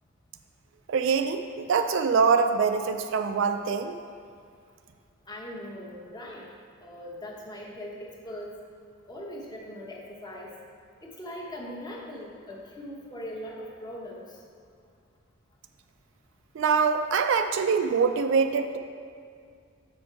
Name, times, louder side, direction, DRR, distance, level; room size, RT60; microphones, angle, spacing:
voice 1, 0.9-3.9 16.5-18.8, right 5 dB, 60° right, 7 dB, 0.4 m, -24 dB
voice 2, 5.3-6.5 6.8-8.6 9.1-10.5 11.0-14.4, equal, 20° left, -3 dB, 1.0 m, -40 dB
6.9 x 5.2 x 4.6 m, 2.2 s
head